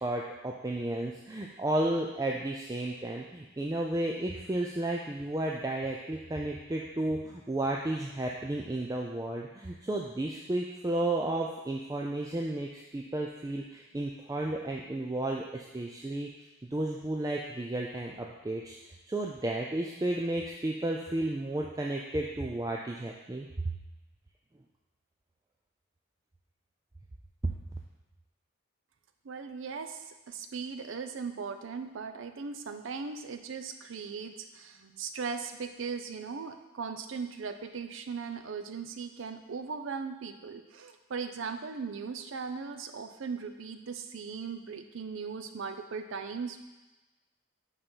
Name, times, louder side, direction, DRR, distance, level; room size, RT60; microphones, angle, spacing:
voice 1, 0.0-16.3 16.7-18.8 19.1-23.5, right 1 dB, 15° right, -1 dB, 0.3 m, -33 dB
voice 2, 29.2-46.6, right 5 dB, 75° right, 7 dB, 0.5 m, -38 dB
5.6 x 4.1 x 5.4 m, 1.1 s
head